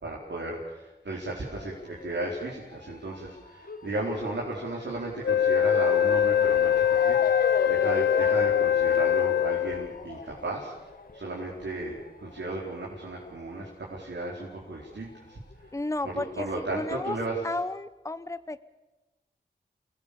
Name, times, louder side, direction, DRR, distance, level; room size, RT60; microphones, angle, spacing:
voice 1, 0.0-7.4 7.7-10.7 11.1-15.7 16.0-17.5, right 2 dB, 85° right, -4 dB, 4.5 m, -34 dB
Motor vehicle (road) / Siren, 1.5-14.5 14.8-16.0 16.6-16.7 17.0-17.1, left 3 dB, 50° left, 1.4 m, -39 dB
Wind instrument woodwind instrument, 5.2-10.0, left 10 dB, 80° left, 0.8 m, -23 dB
voice 2, 15.7-16.5 16.7-17.2 17.4-18.6, left 2 dB, 15° left, 14 dB, 0.8 m, -32 dB
29.0 x 19.0 x 7.1 m, 1.1 s
wide cardioid pair, 70°, 18 cm